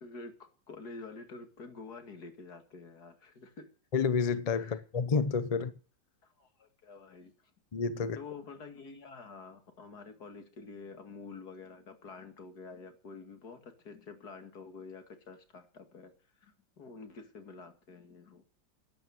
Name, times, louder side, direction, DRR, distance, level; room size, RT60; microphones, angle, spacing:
voice 1, 0.0-3.7 4.6-4.8 6.2-7.3 7.9-16.1 16.4-18.4, left 4 dB, 55° left, 2.7 m, -48 dB
voice 2, 3.9-5.7 7.7-8.2, left 5 dB, 85° left, 0.3 m, -29 dB
12.0 x 10.0 x 7.8 m
omnidirectional pair, 2.0 m